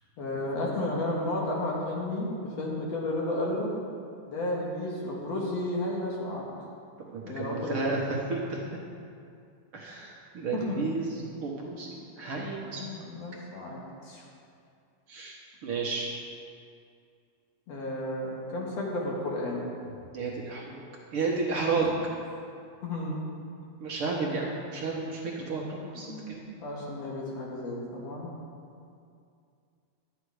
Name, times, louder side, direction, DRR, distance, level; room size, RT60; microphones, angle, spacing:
voice 1, 0.2-3.7 4.3-6.4 7.2-7.9 10.5-10.8 12.4-12.5 12.7-14.2 17.7-19.6 21.8-21.9 22.8-23.2 25.9-28.3, left 1 dB, 60° left, -3 dB, 2.7 m, -33 dB
voice 2, 7.1-8.6 9.7-11.1 11.4-12.8 15.1-16.1 20.1-20.8 21.1-21.9 23.8-26.4, right 4 dB, 60° right, -3 dB, 1.6 m, -32 dB
12.0 x 9.0 x 4.8 m, 2.4 s
omnidirectional pair, 3.4 m